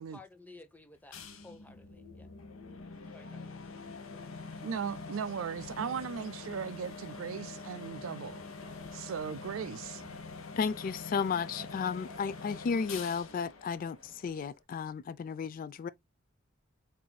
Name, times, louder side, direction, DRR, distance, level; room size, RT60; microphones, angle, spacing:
voice 1, 0.0-2.3 3.1-3.8 4.1-4.3, left 2 dB, 10° left, 0.7 m, -55 dB
sound 1, 1.1-14.6, left 4 dB, 85° left, 0.9 m, -45 dB
voice 2, 4.6-8.4 8.9-10.0, right 7 dB, 75° right, 0.4 m, -37 dB
sound 2, 8.6-14.4, right 2 dB, 25° right, 0.8 m, -60 dB
voice 3, 10.5-15.9, left 5 dB, 45° left, 0.3 m, -33 dB
7.1 x 2.6 x 2.2 m
head